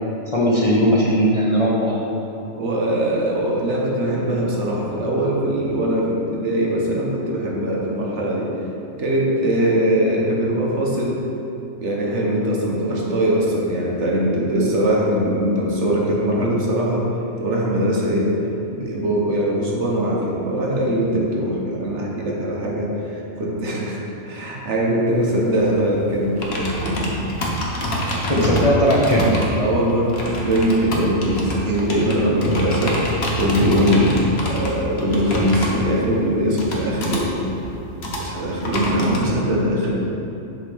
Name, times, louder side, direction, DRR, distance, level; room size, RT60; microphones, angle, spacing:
voice 1, 0.3-2.0 28.3-29.4, equal, 30° left, -6 dB, 0.8 m, -18 dB
voice 2, 2.5-8.5 9.0-11.2 11.8-17.1 17.4-18.3 18.7-27.3 28.1-28.6 29.6-33.0 33.3-37.3 38.2-39.9, equal, 60° right, -3 dB, 1.3 m, -21 dB
sound 1, 25.1-39.3, equal, 50° left, 1.2 m, -27 dB
8.0 x 3.5 x 6.1 m, 2.8 s
omnidirectional pair, 1.4 m